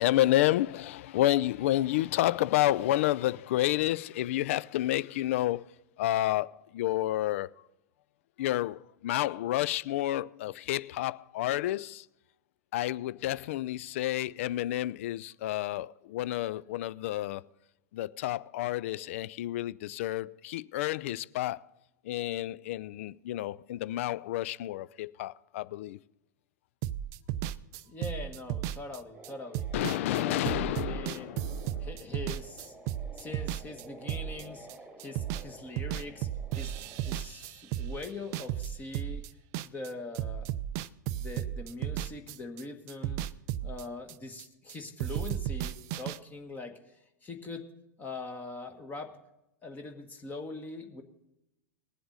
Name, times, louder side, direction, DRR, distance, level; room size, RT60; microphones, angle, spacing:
voice 1, 0.0-5.7 6.0-7.5 8.4-12.1 12.7-17.4 17.9-21.7 22.0-26.0 29.7-31.9, left 15 dB, 50° left, 0.3 m, -30 dB
sound 1, 26.8-34.7 35.0-35.5 35.8-39.9 40.1-44.7 45.0-46.2, right 12 dB, 35° right, 0.4 m, -34 dB
voice 2, 27.9-29.7 30.1-31.3 31.8-32.7 33.2-34.7 35.0-36.3 36.6-39.2 39.6-40.5 41.1-43.2 43.6-46.7 47.2-47.7 48.0-49.2 49.6-51.0, left 3 dB, 20° left, 1.5 m, -42 dB
sound 2, 29.1-37.2, right 2 dB, 10° right, 1.6 m, -50 dB
20.0 x 7.7 x 4.0 m
figure-of-eight pair, 95°, 9 cm